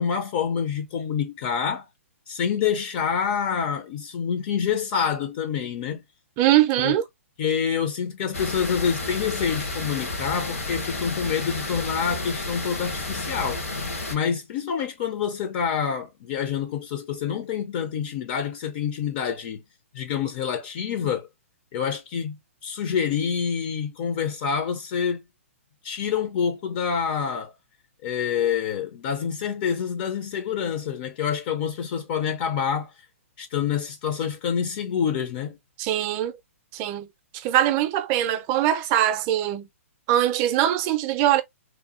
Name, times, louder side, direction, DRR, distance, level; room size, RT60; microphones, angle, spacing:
voice 1, 0.0-1.9 2.3-6.0 6.8-6.9 7.4-13.6 14.1-19.6 19.9-21.3 21.7-25.2 25.8-27.5 28.0-32.9 33.4-35.6, left 7 dB, 40° left, 0.4 m, -27 dB
voice 2, 6.4-7.0 35.8-36.4 36.7-37.1 37.3-39.7 40.1-41.4, right 12 dB, 30° right, 0.4 m, -22 dB
sound 1, 8.3-14.2, left 2 dB, 85° left, 1.2 m, -31 dB
3.0 x 2.3 x 2.4 m
hypercardioid pair, 125°, 7 cm